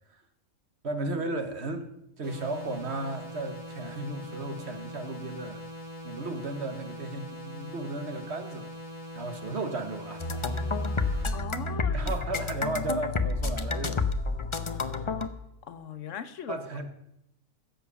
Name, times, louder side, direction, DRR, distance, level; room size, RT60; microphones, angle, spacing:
voice 1, 0.8-1.9 2.2-5.6 6.0-8.7 9.1-10.2 11.2-11.3 11.9-14.0 16.5-16.9, right 2 dB, 50° right, 7 dB, 1.5 m, -34 dB
sound 1, 2.2-11.2, equal, 85° right, 5.9 m, -42 dB
sound 2, 10.2-15.3, left 3 dB, 30° left, 0.5 m, -29 dB
voice 2, 11.3-12.1 14.6-15.1 15.6-16.6, left 8 dB, 65° left, 12 dB, 1.1 m, -40 dB
16.0 x 7.4 x 6.9 m, 0.79 s
omnidirectional pair, 1.4 m